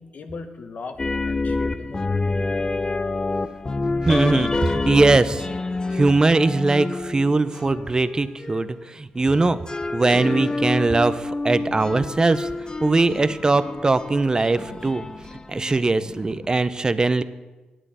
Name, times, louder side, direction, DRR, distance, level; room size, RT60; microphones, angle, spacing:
voice 1, 0.0-2.2, left 4 dB, 55° left, 8 dB, 1.1 m, -38 dB
sound 1, 1.0-8.8 9.3-15.7, left 3 dB, 25° left, 0.6 m, -28 dB
voice 2, 4.0-5.5 5.9-9.6 9.9-12.5 12.8-15.0 15.5-17.2, right 3 dB, 25° right, 14 dB, 0.6 m, -20 dB
sound 2, 9.1-16.7, equal, 10° right, 1.5 m, -43 dB
10.0 x 9.1 x 4.9 m, 1.2 s
cardioid pair, 70°, 3 cm